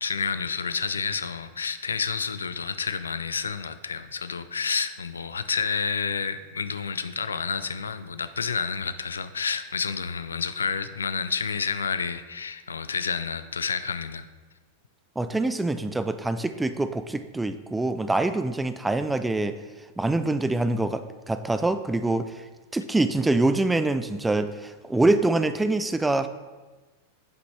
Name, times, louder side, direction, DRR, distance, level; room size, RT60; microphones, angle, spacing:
voice 1, 0.0-14.2, left 5 dB, 70° left, 12 dB, 0.3 m, -29 dB
voice 2, 15.2-19.6 20.0-22.4 22.7-26.3, right 2 dB, 10° right, 10 dB, 0.3 m, -25 dB
8.0 x 5.2 x 3.2 m, 1.2 s
figure-of-eight pair, 90°, 0 cm